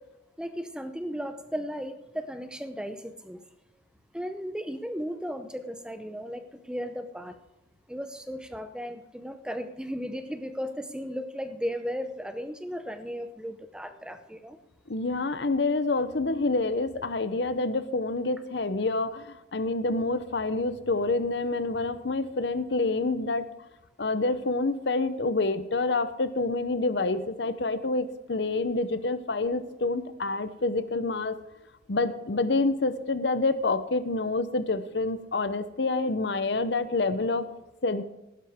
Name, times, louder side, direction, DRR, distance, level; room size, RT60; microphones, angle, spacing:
voice 1, 0.4-3.4 4.1-7.3 7.9-14.6, equal, 5° right, 8 dB, 0.7 m, -35 dB
voice 2, 14.9-23.4 24.0-31.3 31.9-37.4 37.8-38.0, left 3 dB, 70° left, 12 dB, 0.8 m, -27 dB
15.5 x 12.0 x 3.6 m, 0.97 s
head